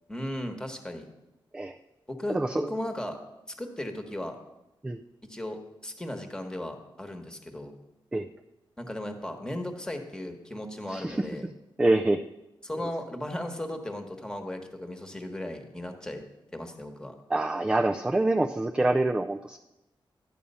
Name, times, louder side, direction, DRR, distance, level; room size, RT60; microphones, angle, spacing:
voice 1, 0.1-1.1 2.1-3.2 3.5-4.4 5.2-7.7 8.8-11.5 12.6-16.2 16.5-17.1, left 1 dB, 10° left, 5 dB, 1.3 m, -36 dB
voice 2, 2.3-2.7 4.8-5.0 8.1-8.3 10.9-11.3 11.8-12.2 17.3-19.6, right 2 dB, 10° right, 5 dB, 0.4 m, -25 dB
12.5 x 8.7 x 5.5 m, 0.95 s
wide cardioid pair, 160°, 9 cm